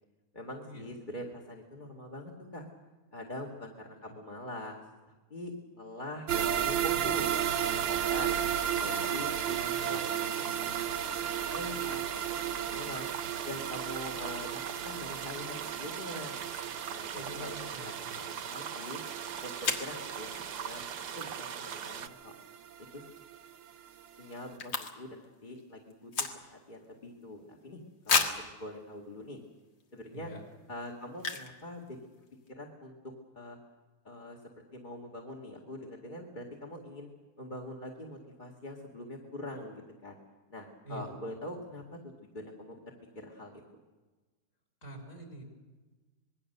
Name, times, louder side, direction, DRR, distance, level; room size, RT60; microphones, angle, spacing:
voice 1, 0.3-2.7 3.1-7.3 7.7-8.5 8.8-10.1 11.5-13.1 13.4-16.4 16.8-19.0 19.4-20.3 20.6-20.8 21.2-22.3 22.9-23.1 24.2-26.1 26.4-27.8 28.0-28.3 28.6-29.4 29.9-30.3 30.7-32.0 32.5-33.0 33.4-33.6 34.0-34.4 34.7-37.1 37.4-40.2 40.5-42.0 42.3-42.8 43.1-43.6, left 1 dB, 25° left, -2 dB, 2.2 m, -43 dB
sound 1, 6.3-23.4 23.7-23.8 24.2-24.3, right 9 dB, 75° right, 1.6 m, -34 dB
sound 2, 7.2-22.1, right 7 dB, 60° right, 1.4 m, -40 dB
voice 2, 17.1-18.2 30.1-30.4 40.8-41.1 44.8-45.4, equal, 40° left, 0 dB, 5.9 m, -46 dB
sound 3, 19.6-20.0 22.9-23.2 23.5-23.6 23.8-25.3 25.5-26.8 27.2-27.3 28.1-28.5 29.2-29.3 29.8-30.0 31.2-31.6 31.9-32.0 32.1-32.5, left 5 dB, 70° left, 2.5 m, -32 dB
26.0 x 21.0 x 6.7 m, 1.2 s
omnidirectional pair, 2.1 m